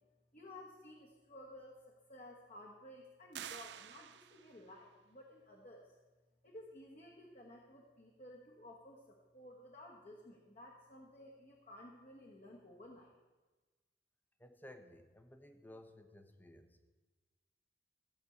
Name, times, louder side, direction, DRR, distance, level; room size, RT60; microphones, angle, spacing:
voice 1, 0.3-5.9 6.4-13.2, left 1 dB, 45° left, -1 dB, 1.5 m, -55 dB
sound 1, 3.3-4.7, right 10 dB, 75° right, 0.5 m, -49 dB
voice 2, 14.4-16.9, left 1 dB, 10° left, 7 dB, 1.0 m, -56 dB
15.5 x 5.3 x 8.4 m, 1.2 s
head